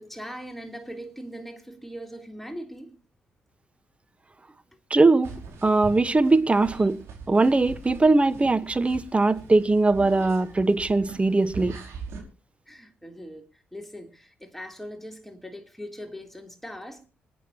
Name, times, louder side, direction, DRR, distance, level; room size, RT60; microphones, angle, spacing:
voice 1, 0.0-3.0 4.5-4.6 6.7-6.9 12.7-17.0, equal, 5° left, 3.1 m, -40 dB
voice 2, 4.9-5.3 5.6-7.0 7.3-11.8, right 3 dB, 25° right, 1.1 m, -20 dB
sound 1, 5.2-12.2, right 5 dB, 60° right, 5.0 m, -42 dB
26.0 x 9.3 x 2.9 m
hypercardioid pair, 40°, 5 cm